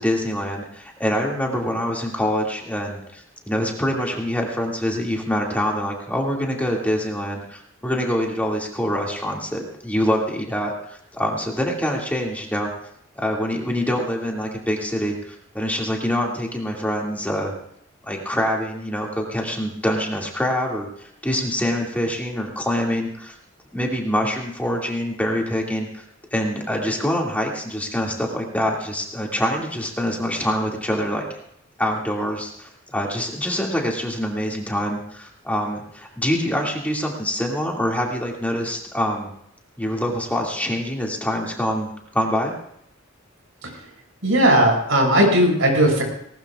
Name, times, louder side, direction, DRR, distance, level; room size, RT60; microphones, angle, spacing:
voice 1, 0.0-12.7 13.2-17.5 18.0-23.3 23.7-26.0 26.3-31.3 31.8-39.3 39.8-42.5, equal, 10° left, -1 dB, 2.2 m, -25 dB
voice 2, 44.2-46.0, right 1 dB, 75° right, 1 dB, 6.2 m, -17 dB
19.5 x 19.5 x 2.4 m, 0.72 s
head